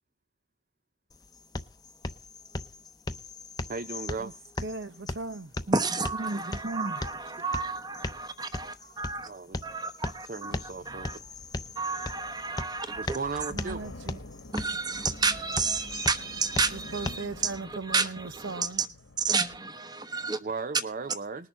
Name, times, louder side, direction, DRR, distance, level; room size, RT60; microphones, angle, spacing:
sound 1, 1.1-17.1, left 2 dB, 20° left, 0.8 m, -39 dB
voice 1, 3.7-4.4 5.7-5.8 6.2-7.0 7.2-7.3 8.2-8.3 8.8-9.6 10.2-11.3 13.0-13.8 20.4-21.5, right 3 dB, 45° right, 0.6 m, -36 dB
voice 2, 4.6-5.5 13.5-14.2 16.7-18.9, right 3 dB, 75° right, 0.8 m, -38 dB
voice 3, 5.7-9.3 9.6-11.2 11.8-13.5 14.5-18.9 19.2-20.4, right 4 dB, 20° right, 1.1 m, -31 dB
sound 2, 10.5-19.6, left 2 dB, 75° left, 1.4 m, -48 dB
20.0 x 6.8 x 5.6 m
head